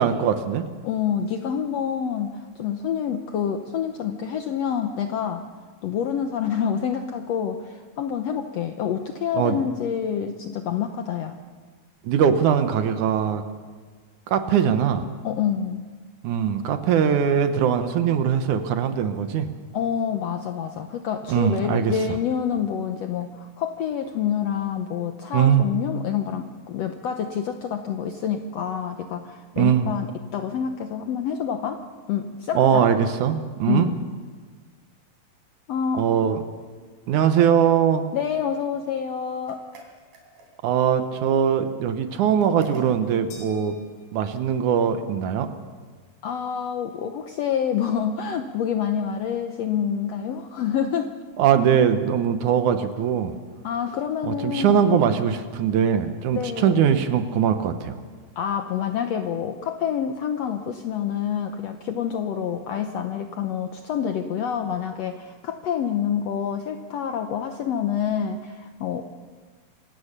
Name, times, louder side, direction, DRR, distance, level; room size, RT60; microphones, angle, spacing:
voice 1, 0.0-0.7 9.3-9.6 12.0-13.4 14.3-15.1 16.2-19.5 21.3-22.0 25.3-25.6 29.6-29.9 32.5-33.9 36.0-36.4 37.1-38.1 40.6-43.8 44.1-45.5 51.4-53.3 54.2-58.0, right 8 dB, 70° right, 9 dB, 2.3 m, -21 dB
voice 2, 0.8-5.4 5.8-11.3 15.2-15.8 19.7-30.1 30.3-31.8 32.1-32.9 33.7-34.0 35.7-36.0 38.1-39.6 46.2-51.1 53.6-55.0 56.3-56.8 58.4-69.0, left 8 dB, 75° left, 7 dB, 1.5 m, -27 dB
sound 1, 39.5-40.8 42.4-43.2, right 2 dB, 90° right, 5.1 m, -46 dB
sound 2, 43.3-44.8, left 3 dB, 90° left, 5.1 m, -49 dB
26.0 x 17.0 x 6.7 m, 1.5 s
omnidirectional pair, 4.0 m